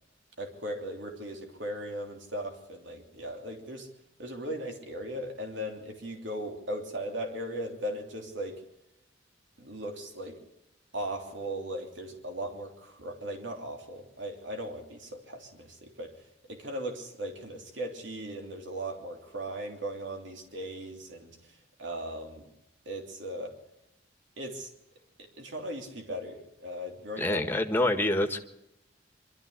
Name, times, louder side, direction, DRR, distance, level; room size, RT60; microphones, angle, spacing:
voice 1, 0.4-3.9 4.2-8.6 9.6-10.4 10.9-22.5 22.8-23.5 24.4-24.7 25.2-27.4, right 1 dB, 75° right, 2 dB, 3.3 m, -38 dB
voice 2, 27.2-28.4, left 1 dB, 10° left, 6 dB, 1.5 m, -26 dB
24.5 x 13.0 x 8.2 m, 0.89 s
head